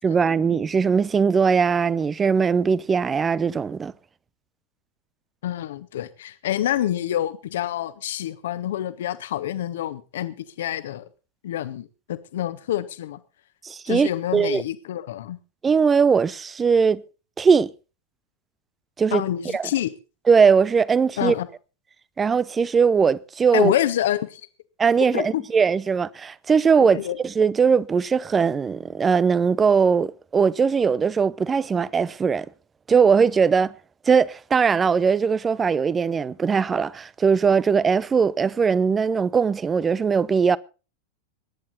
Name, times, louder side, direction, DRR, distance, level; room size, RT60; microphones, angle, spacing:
voice 1, 0.0-3.9 13.6-14.6 15.6-17.0 17.4-17.7 19.0-19.2 19.5-19.7 20.3-21.3 22.2-23.7 24.8-32.5 32.9-33.7 34.1-40.6, right 6 dB, 20° right, 0.6 m, -20 dB
voice 2, 5.4-11.1 11.4-13.2 13.9-15.4 19.1-19.9 21.2-21.5 23.5-24.4 25.1-25.4 26.9-27.2, left 12 dB, 60° left, 1.3 m, -27 dB
22.0 x 10.5 x 4.1 m
figure-of-eight pair, 90°, 0 cm